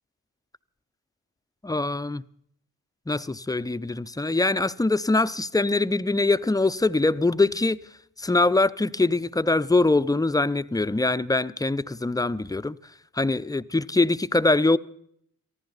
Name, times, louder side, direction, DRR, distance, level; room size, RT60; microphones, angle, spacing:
voice 1, 1.6-2.2 3.1-7.8 8.2-12.8 13.1-14.8, left 2 dB, 10° left, 0.6 m, -23 dB
23.5 x 14.5 x 4.0 m
supercardioid pair, 45°, 37 cm